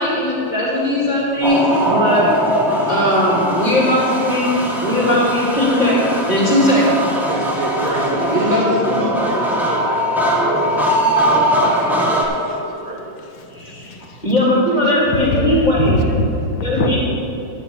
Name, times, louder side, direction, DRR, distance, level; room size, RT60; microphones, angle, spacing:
voice 1, 0.0-7.1 8.0-9.3 13.5-13.9 14.2-16.0 16.6-17.0, left 1 dB, 20° left, -7 dB, 3.3 m, -18 dB
sound 1, 1.4-12.2, equal, ahead, 1.0 m, -20 dB
voice 2, 7.3-10.0 10.2-13.1, right 1 dB, 55° right, -2 dB, 2.4 m, -28 dB
voice 3, 13.2-14.2 15.1-17.0, left 2 dB, 75° left, 3 dB, 1.8 m, -23 dB
12.5 x 5.2 x 8.6 m, 2.8 s
omnidirectional pair, 2.1 m